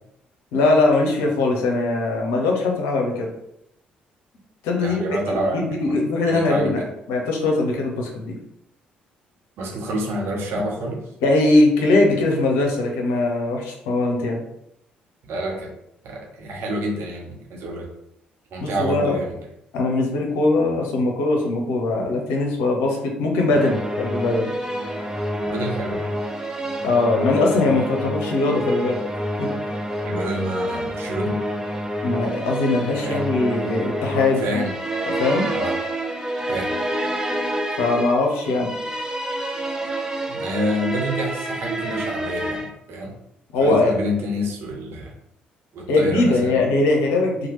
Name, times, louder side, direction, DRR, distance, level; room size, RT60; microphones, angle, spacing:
voice 1, 0.5-3.3 4.6-6.8 7.1-8.4 11.2-14.4 18.6-19.2 19.7-24.5 26.8-29.0 29.4-29.7 32.0-34.7 35.1-35.5 37.8-38.7 43.5-43.9 45.9-47.5, left 2 dB, 70° left, 0 dB, 0.6 m, -21 dB
voice 2, 4.8-6.0 6.3-6.7 9.6-11.0 15.2-15.7 16.0-17.9 18.5-19.4 25.5-26.0 30.0-31.4 32.9-33.2 34.4-34.7 35.5-35.7 36.5-36.7 40.3-43.1 43.6-45.1 45.7-46.6, equal, 60° right, -2 dB, 0.9 m, -28 dB
sound 1, 23.5-42.7, right 1 dB, 15° right, 0.5 m, -28 dB
2.9 x 2.2 x 3.1 m, 0.80 s
hypercardioid pair, 50°, 4 cm